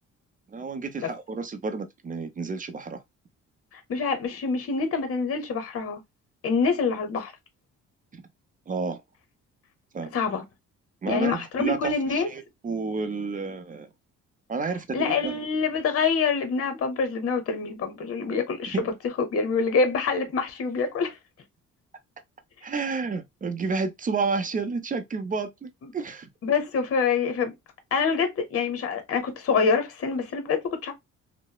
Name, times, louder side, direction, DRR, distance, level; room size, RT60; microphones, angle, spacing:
voice 1, 0.5-3.0 8.1-8.2 8.7-9.0 9.9-10.2 11.0-13.9 14.5-15.4 18.7-18.9 22.6-26.3, right 4 dB, 25° right, 0.6 m, -30 dB
voice 2, 3.7-6.0 6.4-7.3 10.1-10.4 11.1-12.3 14.9-18.8 19.3-21.2 25.8-25.9 26.4-27.5 27.9-30.9, left 5 dB, 50° left, 0.8 m, -26 dB
2.9 x 2.0 x 2.2 m
cardioid pair, 90°, 30 cm